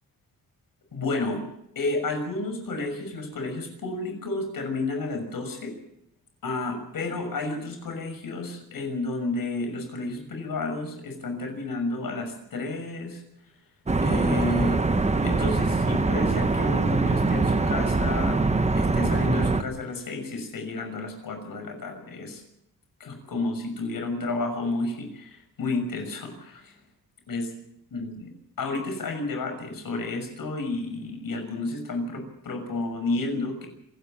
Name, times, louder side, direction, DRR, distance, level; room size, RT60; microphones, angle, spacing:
voice 1, 0.9-1.4 1.7-5.7 6.4-13.2 14.0-14.8 15.2-18.4 18.7-22.4 23.0-26.8 27.3-27.5 27.9-28.3 28.6-33.7, left 2 dB, 70° left, 6 dB, 6.3 m, -31 dB
sound 1, 13.9-19.6, right 3 dB, 20° right, 1.0 m, -23 dB
27.5 x 13.0 x 7.5 m, 0.78 s
wide cardioid pair, 170°, 36 cm